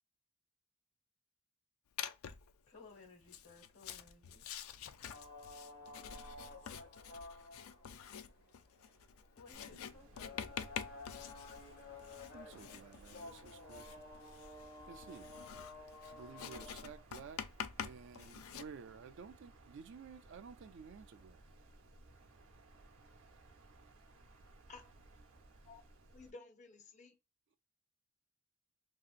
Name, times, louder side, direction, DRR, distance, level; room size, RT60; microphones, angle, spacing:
Writing, 2.0-2.5 3.2-18.6, left 8 dB, 80° left, 0.4 m, -47 dB
voice 1, 2.7-4.4 9.3-10.8, left 4 dB, 65° left, 1.3 m, -59 dB
sound 1, 5.1-17.0, left 3 dB, 50° left, 1.0 m, -53 dB
Wind, 9.5-26.3, right 2 dB, 80° right, 0.7 m, -61 dB
voice 2, 12.3-14.0 14.9-15.3 16.1-17.4 17.8-21.4, right 5 dB, 55° right, 0.4 m, -53 dB
voice 3, 26.1-27.2, left 3 dB, 35° left, 0.6 m, -54 dB
2.9 x 2.8 x 2.4 m
head